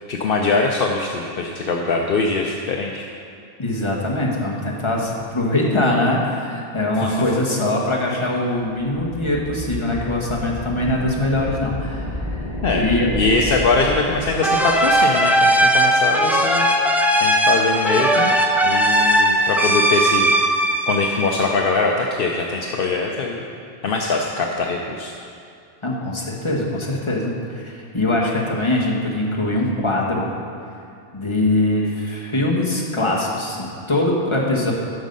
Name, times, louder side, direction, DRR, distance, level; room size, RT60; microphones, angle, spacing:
voice 1, 0.1-3.0 7.0-7.2 12.6-12.9 13.1-18.4 18.6-20.6 20.9-23.4 23.8-25.1, left 3 dB, 65° left, 1 dB, 0.8 m, -22 dB
voice 2, 3.6-12.4 12.7-13.1 25.8-30.3 31.1-34.7, left 1 dB, 30° left, -3 dB, 1.4 m, -22 dB
sound 1, 8.8-15.1, equal, 30° right, 2.9 m, -30 dB
sound 2, 14.4-21.9, right 1 dB, ahead, 0.5 m, -18 dB
11.5 x 6.2 x 5.3 m, 2.4 s
omnidirectional pair, 1.0 m